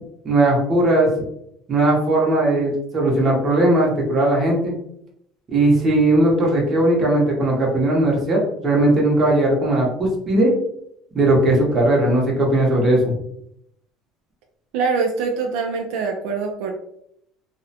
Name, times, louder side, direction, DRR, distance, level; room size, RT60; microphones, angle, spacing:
voice 1, 0.2-1.1 1.7-4.7 5.5-10.5 11.1-13.2, right 1 dB, 30° right, -2 dB, 0.8 m, -18 dB
voice 2, 14.7-16.7, right 4 dB, 75° right, 2 dB, 0.3 m, -23 dB
2.4 x 2.0 x 2.7 m, 0.75 s
cardioid pair, 140°, 0 cm